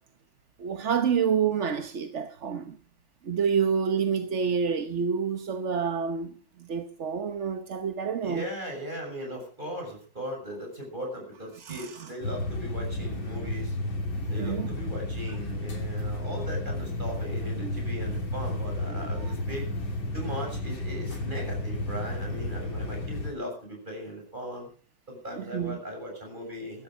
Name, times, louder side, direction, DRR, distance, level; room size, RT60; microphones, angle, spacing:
voice 1, 0.6-2.8 3.2-8.4 11.6-12.1 14.2-14.7 17.6-17.8 19.2-19.3 25.4-25.8, right 6 dB, 45° right, 1.1 m, -28 dB
voice 2, 8.2-13.8 14.3-19.7 20.1-24.7 25.1-26.8, equal, 20° right, 7.5 m, -38 dB
sound 1, 12.2-23.3, left 1 dB, 70° left, 3.6 m, -32 dB
16.0 x 13.0 x 5.2 m
omnidirectional pair, 2.2 m